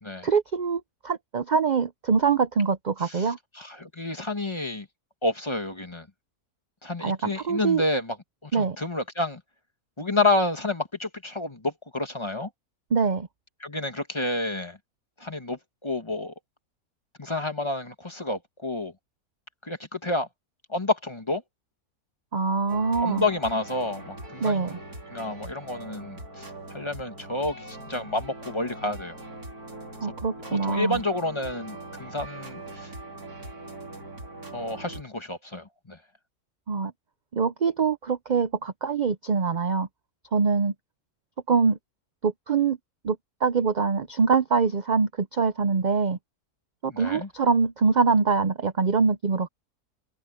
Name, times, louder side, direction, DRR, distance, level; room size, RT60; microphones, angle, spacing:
voice 1, 0.2-3.4 7.0-7.8 8.5-8.8 12.9-13.3 22.3-23.2 24.4-24.7 30.0-31.0 36.7-36.9 37.3-39.9 40.3-40.7 41.5-41.8 42.2-42.8 43.0-46.2 46.8-49.5, right 5 dB, 45° right, 0.6 m, -24 dB
voice 2, 3.5-4.9 5.2-6.0 6.8-8.2 8.4-9.4 10.0-12.5 13.6-14.8 15.2-16.3 17.2-18.9 19.6-20.3 20.7-21.4 23.0-24.7 25.1-29.2 30.0-30.1 30.6-32.9 34.5-36.0 46.9-47.3, left 2 dB, 20° left, 1.5 m, -29 dB
sound 1, 22.7-35.0, right 2 dB, 75° right, 4.8 m, -41 dB
omnidirectional pair, 1.6 m